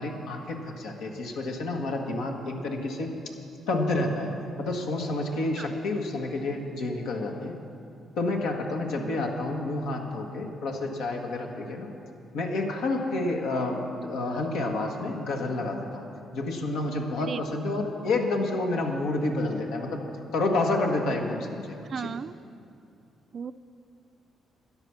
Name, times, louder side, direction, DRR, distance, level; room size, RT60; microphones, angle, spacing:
voice 1, 0.0-3.1 3.7-4.3 4.6-7.5 8.2-11.9 12.3-16.1 16.3-20.0 20.3-22.1, left 2 dB, 90° left, 1 dB, 1.5 m, -29 dB
voice 2, 9.0-9.3 17.2-17.4 21.9-22.3 23.3-23.5, right 6 dB, 50° right, 13 dB, 0.4 m, -35 dB
13.0 x 10.0 x 6.0 m, 2.5 s
cardioid pair, 90°, 0 cm